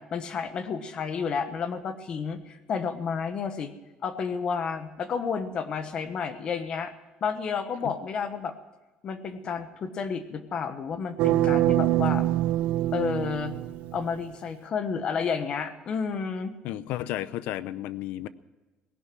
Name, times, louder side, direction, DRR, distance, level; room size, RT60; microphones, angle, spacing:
voice 1, 0.0-3.7 4.0-6.9 7.2-8.5 9.0-12.3 12.9-13.5 13.9-16.5, left 6 dB, 35° left, 10 dB, 1.1 m, -31 dB
sound 1, 11.2-14.2, right 14 dB, 60° right, 0.4 m, -25 dB
voice 2, 16.6-18.3, left 13 dB, 65° left, 17 dB, 0.6 m, -33 dB
18.5 x 11.0 x 6.1 m, 1.2 s
cardioid pair, 175°, 3 cm